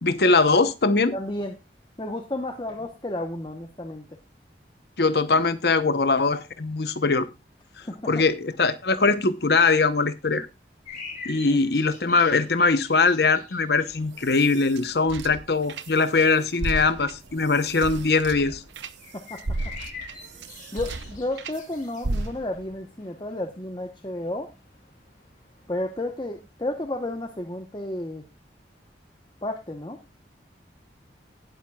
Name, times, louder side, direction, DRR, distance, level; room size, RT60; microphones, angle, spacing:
voice 1, 0.0-1.1 5.0-7.3 8.1-10.5 11.2-18.6, left 4 dB, 65° left, 0.9 m, -21 dB
voice 2, 1.1-1.6 2.0-4.1 7.8-8.3 11.5-11.6 19.1-19.7 20.3-24.5 25.7-28.2 29.4-30.0, left 1 dB, 25° left, 1.0 m, -32 dB
sound 1, 10.8-26.4, left 4 dB, 45° left, 6.2 m, -47 dB
sound 2, 13.9-16.2 16.5-21.6 22.0-22.7, right 2 dB, 85° right, 0.9 m, -34 dB
19.0 x 7.5 x 2.3 m
head